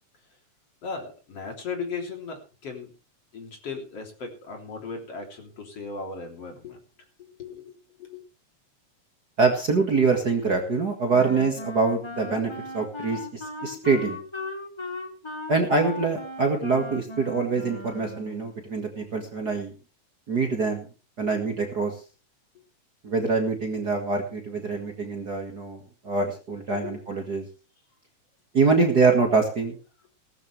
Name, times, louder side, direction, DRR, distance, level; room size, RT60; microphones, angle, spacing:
voice 1, 0.8-2.9 3.3-6.8 7.4-8.2 26.8-27.0, left 4 dB, 50° left, 2 dB, 4.4 m, -37 dB
voice 2, 9.4-14.2 15.5-19.7 20.3-20.9 21.2-21.9 23.0-27.5 28.5-29.8, right 4 dB, 35° right, 3 dB, 2.1 m, -24 dB
Wind instrument woodwind instrument, 11.1-18.5, left 2 dB, 25° left, 0.6 m, -37 dB
18.5 x 13.0 x 3.4 m, 0.34 s
omnidirectional pair, 3.4 m